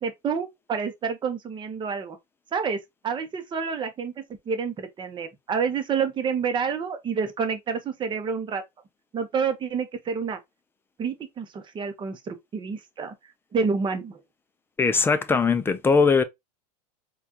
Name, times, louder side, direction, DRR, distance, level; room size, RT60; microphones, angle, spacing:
voice 1, 0.0-2.2 2.5-2.8 3.0-8.6 9.1-10.4 11.0-13.1 13.5-14.2, right 6 dB, 25° right, 0.8 m, -28 dB
voice 2, 14.8-16.2, left 5 dB, 10° left, 0.4 m, -20 dB
4.3 x 2.4 x 2.8 m
supercardioid pair, 120°, 21 cm